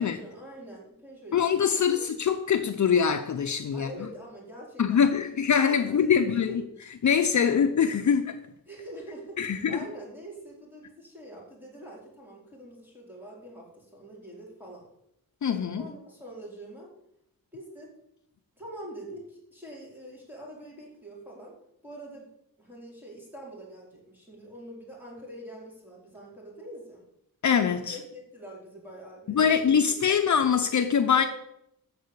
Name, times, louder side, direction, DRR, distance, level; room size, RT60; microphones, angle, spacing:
voice 1, 0.0-2.0 3.7-5.0 5.5-6.2 6.5-6.6 8.7-14.9 15.8-16.9 17.5-17.9 18.6-21.6 21.8-22.3 22.6-27.0 27.9-29.9 31.1-31.3, right 1 dB, 5° right, 4.4 m, -44 dB
voice 2, 1.3-3.9 4.8-6.6 7.0-8.4 9.4-9.8 15.4-15.9 27.4-28.0 29.3-31.3, left 7 dB, 55° left, 0.7 m, -23 dB
13.5 x 4.9 x 8.2 m
wide cardioid pair, 145°, 35 cm